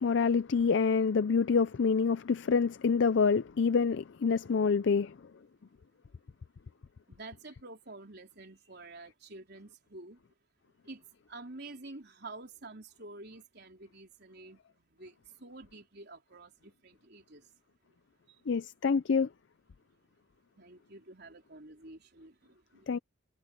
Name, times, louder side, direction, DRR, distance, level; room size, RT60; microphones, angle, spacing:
voice 1, 0.0-5.2 18.5-19.3 22.9-23.0, left 5 dB, 60° left, 0.4 m, -27 dB
voice 2, 7.1-10.2 10.8-11.0 11.3-14.6 15.0-15.1 15.4-17.4 20.6-22.9, right 2 dB, 55° right, 4.2 m, -49 dB
head